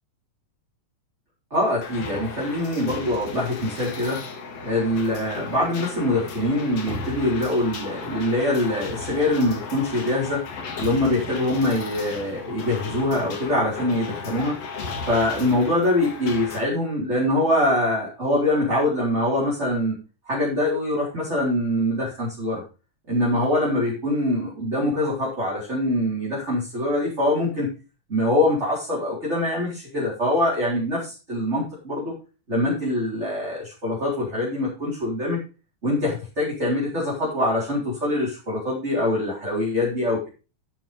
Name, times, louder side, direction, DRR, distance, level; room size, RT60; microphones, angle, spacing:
voice 1, 1.5-4.2 4.6-10.5 10.8-14.6 15.0-19.9 20.3-22.6 23.1-27.7 28.1-32.1 32.5-35.4 35.8-40.3, left 1 dB, 20° right, -7 dB, 4.7 m, -24 dB
sound 1, 1.8-16.6, left 4 dB, 60° left, 2.9 m, -35 dB
12.5 x 7.1 x 5.4 m, 0.33 s
omnidirectional pair, 3.4 m